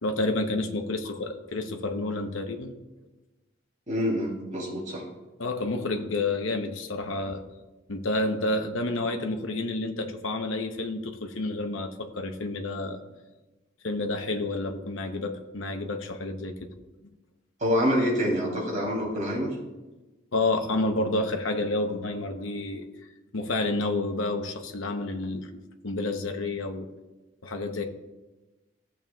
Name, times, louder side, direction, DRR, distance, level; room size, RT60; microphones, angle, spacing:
voice 1, 0.0-2.7 5.4-7.4 7.9-13.0 13.8-16.5 20.3-22.9 23.3-26.9 27.4-27.8, left 2 dB, 85° left, 4 dB, 0.9 m, -29 dB
voice 2, 3.9-5.0 17.6-19.5, equal, 40° right, -3 dB, 3.0 m, -26 dB
15.0 x 7.3 x 2.3 m, 1.1 s
head